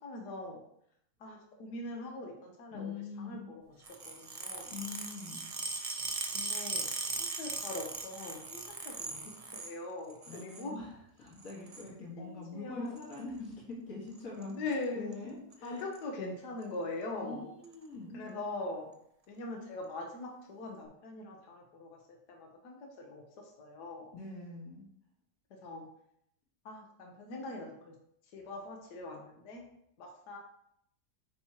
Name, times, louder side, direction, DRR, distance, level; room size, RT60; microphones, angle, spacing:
voice 1, 0.0-0.6 1.2-3.6 4.0-4.8 6.3-6.9 7.2-10.7 12.2-12.9 14.5-15.2 15.6-17.5 18.1-18.9 19.3-24.1 25.6-25.8 26.6-27.9 28.3-29.6 30.0-30.4, left 2 dB, 80° left, 0 dB, 1.5 m, -42 dB
voice 2, 2.7-3.4 4.7-5.4 10.3-10.9 11.2-14.5 14.9-15.8 17.2-18.3 24.1-24.8, left 3 dB, 60° left, -4 dB, 1.8 m, -43 dB
sound 1, 3.8-9.7 10.1-10.7 11.4-11.9 13.0-13.2 14.2-14.4 14.7-14.8 15.1-15.2 15.5-16.0 16.6-16.7 17.6-17.7, right 3 dB, 65° right, 0.3 m, -39 dB
8.4 x 2.9 x 4.3 m, 0.73 s
omnidirectional pair, 1.7 m